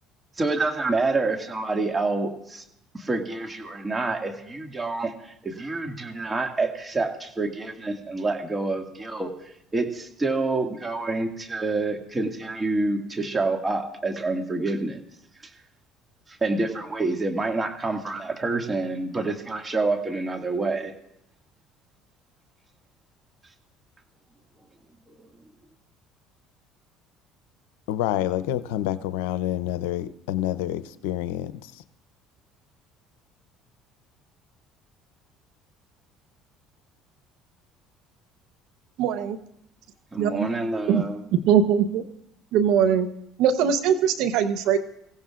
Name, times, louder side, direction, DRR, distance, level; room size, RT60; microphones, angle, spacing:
voice 1, 0.4-2.6 2.9-15.0 16.4-20.9 25.1-25.2 40.1-41.2, right 3 dB, 20° right, 3 dB, 2.0 m, -27 dB
voice 2, 27.9-31.8, left 13 dB, 85° left, 13 dB, 0.6 m, -28 dB
voice 3, 39.0-39.4 40.2-40.5 40.9-41.0 41.5-42.0 42.5-43.1 43.4-44.8, right 8 dB, 70° right, 11 dB, 0.9 m, -21 dB
27.0 x 16.0 x 2.5 m, 0.77 s
supercardioid pair, 80°, 0 cm